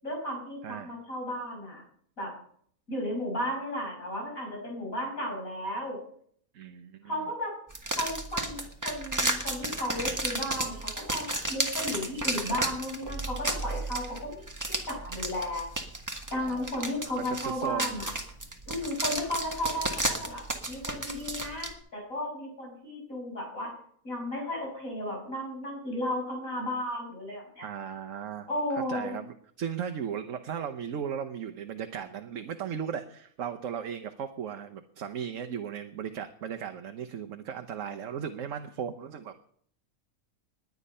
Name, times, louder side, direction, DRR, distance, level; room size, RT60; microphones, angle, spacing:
voice 1, 0.0-1.8 2.2-2.3 2.9-6.0 7.1-7.5 7.9-15.7 16.3-18.1 18.7-23.7 24.0-27.7 28.5-29.1, left 1 dB, 70° left, 0 dB, 6.3 m, -34 dB
voice 2, 6.5-7.1 16.5-16.7 17.2-18.0 27.6-28.5 28.7-39.4, right 8 dB, 65° right, 6 dB, 1.2 m, -36 dB
sound 1, 7.7-21.7, right 2 dB, 15° right, 1.6 m, -33 dB
20.5 x 9.6 x 5.5 m, 0.62 s
omnidirectional pair, 1.5 m